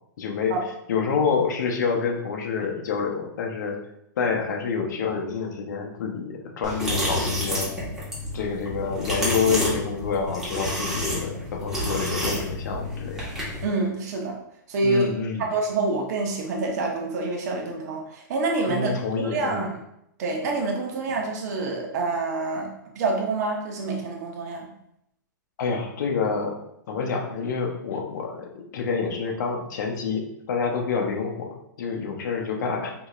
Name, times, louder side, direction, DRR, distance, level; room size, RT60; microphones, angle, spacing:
voice 1, 0.2-0.6 0.9-3.8 4.2-7.7 8.3-13.2 14.8-15.4 18.7-19.7 25.6-32.9, left 5 dB, 65° left, 1 dB, 0.8 m, -28 dB
sound 1, 6.6-13.6, left 1 dB, 5° right, 1.5 m, -29 dB
voice 2, 13.6-14.4 14.7-15.1 15.4-18.9 19.2-19.8 20.2-24.7, right 3 dB, 55° right, 1 dB, 1.1 m, -27 dB
4.9 x 3.0 x 2.4 m, 0.77 s
hypercardioid pair, 135°, 10 cm